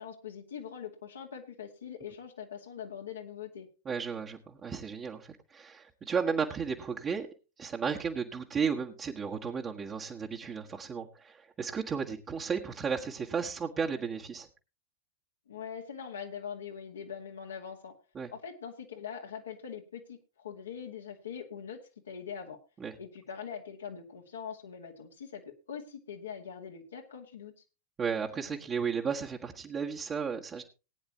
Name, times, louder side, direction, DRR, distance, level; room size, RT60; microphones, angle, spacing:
voice 1, 0.0-3.7 15.5-17.9 18.3-21.8 22.0-22.6 23.0-27.5, left 7 dB, 70° left, 2 dB, 2.2 m, -42 dB
voice 2, 3.8-7.3 7.6-14.5 18.1-18.3 22.8-22.9 28.0-30.6, right 6 dB, 25° right, -1 dB, 1.5 m, -34 dB
19.5 x 9.6 x 2.9 m, 0.30 s
figure-of-eight pair, 90°, 0 cm